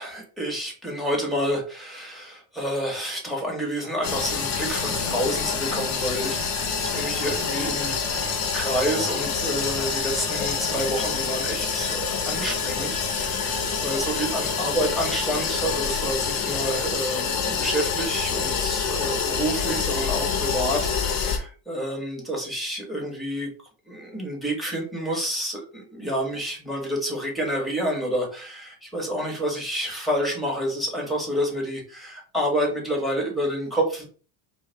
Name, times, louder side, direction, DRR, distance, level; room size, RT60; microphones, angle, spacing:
voice 1, 0.0-23.5 23.9-34.1, equal, ahead, -1 dB, 1.7 m, -29 dB
sound 1, 4.0-21.4, left 5 dB, 40° left, 1.0 m, -27 dB
4.6 x 2.4 x 3.5 m, 0.39 s
supercardioid pair, 115°, 44 cm